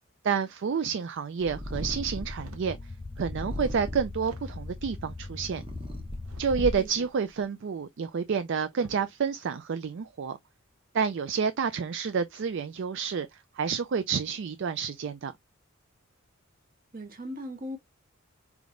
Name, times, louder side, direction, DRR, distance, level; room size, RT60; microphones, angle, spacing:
voice 1, 0.2-2.8 3.2-5.6 6.4-10.4 10.9-15.3, right 6 dB, 60° right, 0.4 m, -29 dB
Purr, 1.4-2.5 3.2-4.3 5.0-7.1, left 1 dB, 25° right, 1.0 m, -37 dB
sound 1, 1.7-6.7, left 3 dB, 25° left, 0.4 m, -41 dB
sound 2, 2.3-2.8 3.5-3.6 4.2-4.8 6.2-6.9 8.1-8.2 8.7-9.2 9.8-10.1, right 3 dB, 75° right, 0.8 m, -51 dB
voice 2, 6.7-7.1 16.9-17.8, equal, 40° right, 1.2 m, -39 dB
4.7 x 3.5 x 2.5 m
head